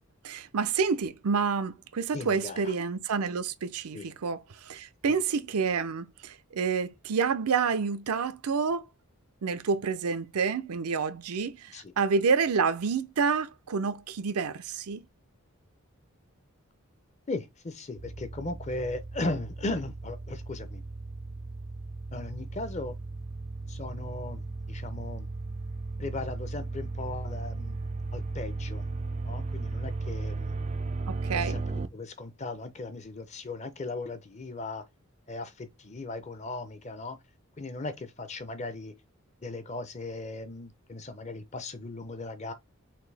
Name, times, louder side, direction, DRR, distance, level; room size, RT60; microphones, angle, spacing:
voice 1, 0.2-8.8 9.4-15.0 31.1-31.6, right 5 dB, 90° right, 0.5 m, -28 dB
voice 2, 2.1-2.7 3.9-4.1 5.1-5.2 11.7-11.9 17.3-20.8 22.1-22.9 23.7-25.3 26.0-27.8 28.1-28.8 29.2-30.6 31.3-34.8 35.3-37.2 37.6-38.9 39.4-42.5, left 2 dB, 30° left, 0.6 m, -37 dB
sound 1, 18.0-31.9, right 3 dB, 30° right, 0.3 m, -36 dB
5.8 x 2.7 x 3.3 m
head